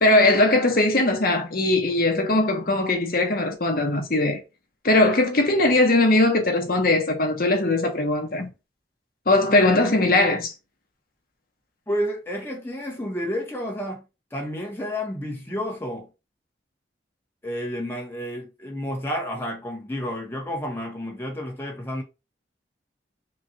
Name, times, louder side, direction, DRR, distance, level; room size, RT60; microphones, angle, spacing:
voice 1, 0.0-4.4 4.8-8.5 9.3-10.5, left 2 dB, 50° left, 1.0 m, -20 dB
voice 2, 11.9-14.0 14.3-16.1 17.4-22.0, equal, 15° left, 1.0 m, -30 dB
5.5 x 2.3 x 2.6 m
head